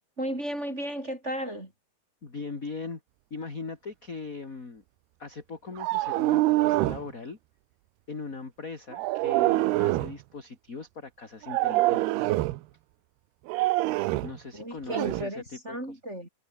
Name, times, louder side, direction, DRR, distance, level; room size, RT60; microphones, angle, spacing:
voice 1, 0.2-1.7 14.5-16.3, equal, 15° right, 4.3 m, -34 dB
voice 2, 2.2-3.0 3.3-4.8 5.2-7.4 8.1-12.3 14.2-15.8, left 4 dB, 25° left, 2.8 m, -40 dB
sound 1, 5.8-7.1 8.9-10.2 11.4-12.6 13.5-14.4 14.9-15.2, right 18 dB, 90° right, 2.8 m, -25 dB
omnidirectional pair, 4.6 m